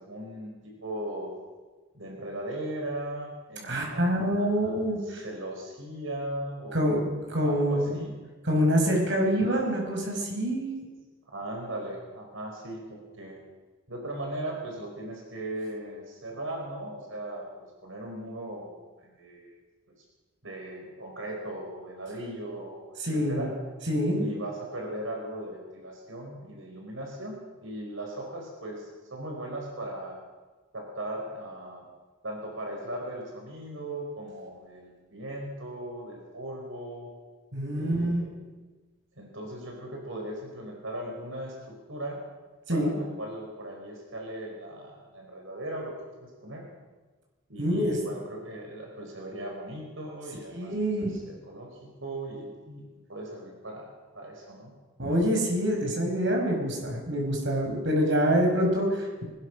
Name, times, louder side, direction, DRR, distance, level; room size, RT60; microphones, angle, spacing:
voice 1, 0.0-1.3 1.9-7.0 7.3-8.1 11.3-13.4 13.9-19.5 20.4-23.5 24.1-30.2 30.7-31.8 32.2-37.1 37.7-38.6 39.2-42.2 42.7-46.7 47.5-54.7, right 1 dB, 75° right, 0 dB, 4.8 m, -38 dB
voice 2, 3.7-5.2 6.7-7.0 7.3-8.0 8.4-10.7 23.0-23.4 23.9-24.2 37.5-38.2 42.7-42.9 47.6-48.0 50.5-51.1 55.0-59.2, equal, 60° right, 0 dB, 5.3 m, -26 dB
21.0 x 20.0 x 6.3 m, 1.3 s
head